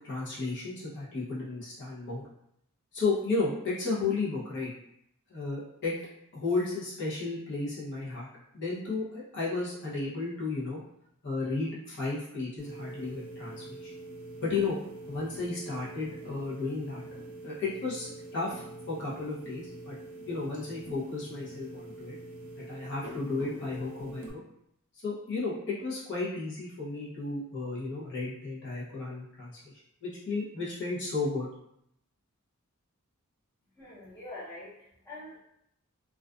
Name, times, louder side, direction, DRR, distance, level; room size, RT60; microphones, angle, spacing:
voice 1, 0.0-2.3 2.9-4.7 5.3-5.9 6.3-8.3 8.5-10.8 11.2-13.9 14.4-14.8 15.1-17.0 17.4-20.0 20.3-22.2 22.6-24.2 25.0-29.7 30.0-31.5, left 3 dB, 55° left, -7 dB, 0.7 m, -33 dB
sound 1, 12.6-24.3, right 2 dB, 75° right, 0.5 m, -44 dB
voice 2, 33.8-35.4, left 1 dB, 10° left, -9 dB, 0.8 m, -45 dB
2.4 x 2.3 x 2.3 m, 0.76 s
head